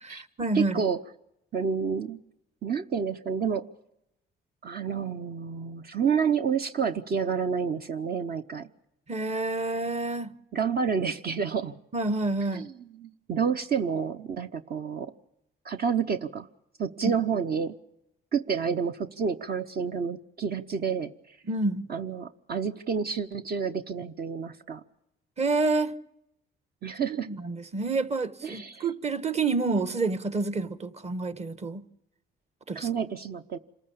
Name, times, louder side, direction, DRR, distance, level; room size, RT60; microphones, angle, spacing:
voice 1, 0.0-0.8 9.1-10.3 11.9-12.7 17.0-17.1 21.5-21.9 25.4-25.9 27.1-31.8 32.7-32.9, right 3 dB, 35° right, 1.2 m, -28 dB
voice 2, 0.5-1.0 1.5-2.2 2.6-3.6 4.6-8.7 10.5-11.8 12.5-15.1 15.6-16.5 16.8-17.7 18.3-21.1 21.9-24.8 26.8-27.3 28.4-28.9 32.7-33.6, right 6 dB, 50° right, 0.9 m, -29 dB
26.5 x 14.5 x 8.6 m
cardioid pair, 90°, 20 cm